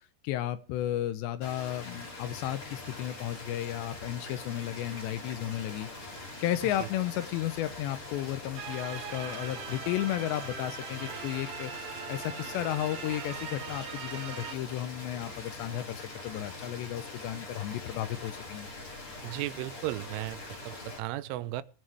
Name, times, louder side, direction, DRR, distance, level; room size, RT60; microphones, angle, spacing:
voice 1, 0.2-5.9 6.4-11.7 12.1-18.7, left 13 dB, 80° left, 2.7 m, -33 dB
sound 1, 1.4-21.0, left 2 dB, 30° left, 4.4 m, -43 dB
sound 2, 8.6-14.6, right 7 dB, 60° right, 2.9 m, -41 dB
voice 2, 19.2-21.6, right 16 dB, 85° right, 3.2 m, -35 dB
21.5 x 7.7 x 3.4 m
omnidirectional pair, 5.5 m